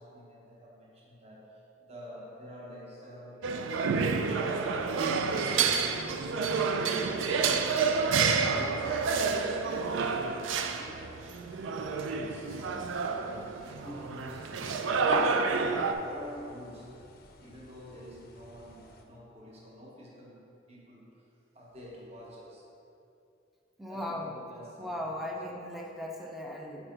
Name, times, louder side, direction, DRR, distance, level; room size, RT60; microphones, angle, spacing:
voice 1, 0.0-7.1 7.8-11.3 12.2-16.9 17.4-21.3 21.5-22.7 23.9-25.3, equal, 30° right, -4 dB, 0.9 m, -47 dB
sound 1, 3.4-15.9, right 5 dB, 75° right, 0.4 m, -29 dB
sound 2, 4.3-19.0, left 2 dB, 50° left, 0.5 m, -47 dB
voice 2, 23.8-24.4 24.8-26.9, left 1 dB, ahead, -1 dB, 0.5 m, -37 dB
5.9 x 4.5 x 3.9 m, 2.7 s
head